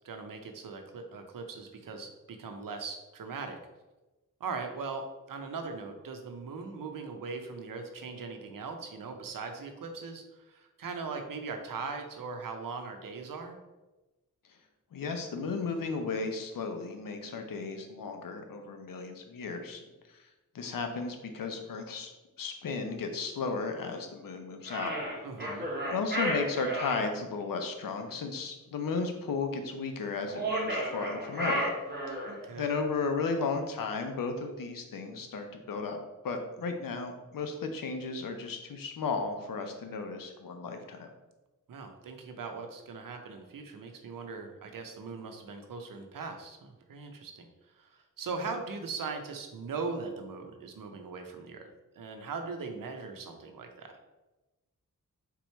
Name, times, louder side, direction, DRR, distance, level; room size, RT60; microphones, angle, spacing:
voice 1, 0.0-3.6 4.4-13.6 25.2-25.7 32.3-32.7 41.7-47.5 47.8-51.7 52.0-54.0, right 4 dB, 80° right, 5 dB, 0.7 m, -40 dB
voice 2, 14.9-19.9 20.5-22.1 22.4-24.9 25.9-31.6 32.1-32.2 32.5-36.0 36.2-41.1, left 4 dB, 85° left, 5 dB, 0.7 m, -34 dB
sound 1, 24.7-27.1 30.3-32.4, right 1 dB, 30° right, 1.4 m, -33 dB
3.8 x 3.0 x 4.4 m, 1.1 s
wide cardioid pair, 110°, 33 cm